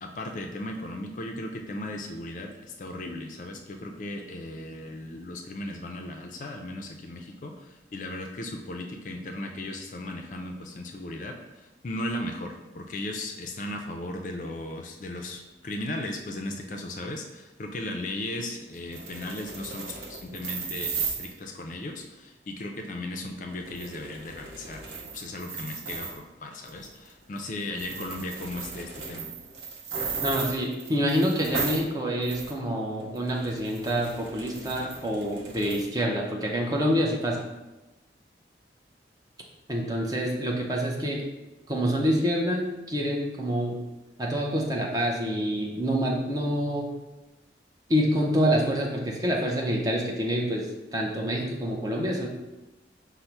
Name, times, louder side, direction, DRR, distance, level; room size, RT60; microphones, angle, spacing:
voice 1, 0.0-29.3, left 1 dB, 45° left, 3 dB, 0.4 m, -36 dB
sound 1, 18.7-21.3 23.5-26.2 26.6-27.1 27.4-27.5 27.7-31.9 32.2-32.5 33.0-35.8, right 5 dB, 70° right, 0.7 m, -36 dB
voice 2, 30.2-37.4 39.7-41.2 41.7-43.8 44.2-46.9 47.9-50.7 50.9-52.3, equal, 20° right, -1 dB, 0.6 m, -27 dB
5.3 x 2.0 x 4.5 m, 1.0 s
head